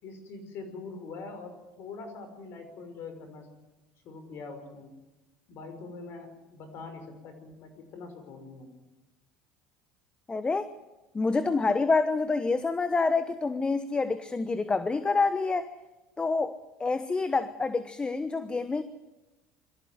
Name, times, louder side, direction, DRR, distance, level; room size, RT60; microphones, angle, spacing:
voice 1, 0.0-3.5 4.0-4.9 5.5-8.7, left 4 dB, 60° left, 8 dB, 5.7 m, -43 dB
voice 2, 10.3-10.7 11.1-15.7 16.2-18.8, left 3 dB, 20° left, 12 dB, 1.1 m, -27 dB
23.0 x 14.5 x 9.5 m, 1.1 s
supercardioid pair, 90°, 5 cm